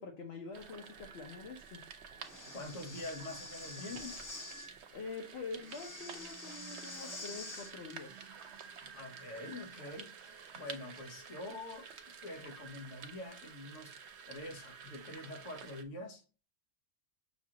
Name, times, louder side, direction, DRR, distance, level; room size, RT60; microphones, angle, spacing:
voice 1, 0.0-1.8 4.9-8.3, left 4 dB, 65° left, 1.0 m, -45 dB
sound 1, 0.5-15.8, right 6 dB, 70° right, 0.9 m, -51 dB
Breathing, 2.2-4.7 5.6-7.7, left 2 dB, 20° left, 0.6 m, -47 dB
voice 2, 2.4-4.3 8.8-10.1 10.5-11.9 12.2-13.9 14.3-16.2, left 2 dB, 90° left, 1.4 m, -45 dB
6.1 x 2.4 x 2.8 m
omnidirectional pair, 1.2 m